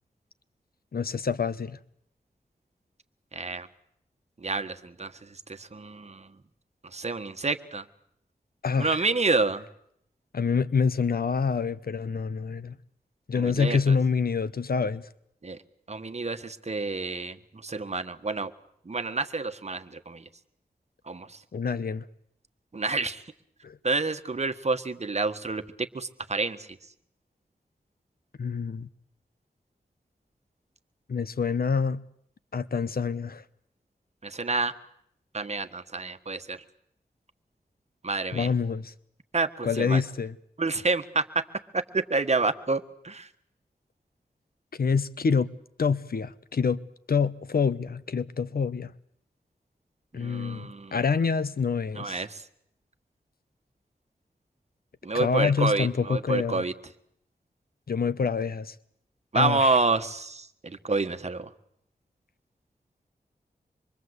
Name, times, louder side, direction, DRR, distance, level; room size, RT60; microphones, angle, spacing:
voice 1, 0.9-1.8 8.6-9.1 10.3-12.7 13.3-15.0 21.5-22.0 23.6-23.8 28.4-28.9 31.1-32.0 32.5-33.4 38.3-38.9 39.6-40.3 44.8-45.5 45.8-46.8 47.1-48.9 50.1-52.2 55.1-56.6 57.9-58.7 59.3-59.8, left 5 dB, 70° left, 1.0 m, -26 dB
voice 2, 3.3-3.7 4.4-5.1 5.6-6.3 6.9-7.8 8.8-9.6 13.4-13.9 15.4-15.6 15.9-17.4 17.6-18.5 18.8-20.2 21.1-21.4 22.7-23.2 23.8-26.6 34.2-34.7 35.3-36.6 38.0-38.5 39.3-40.0 40.6-41.4 41.7-43.3 50.1-51.0 51.9-52.4 55.0-56.7 59.3-61.5, right 3 dB, 45° right, 1.6 m, -28 dB
25.5 x 23.5 x 8.2 m
wide cardioid pair, 85°, 16 cm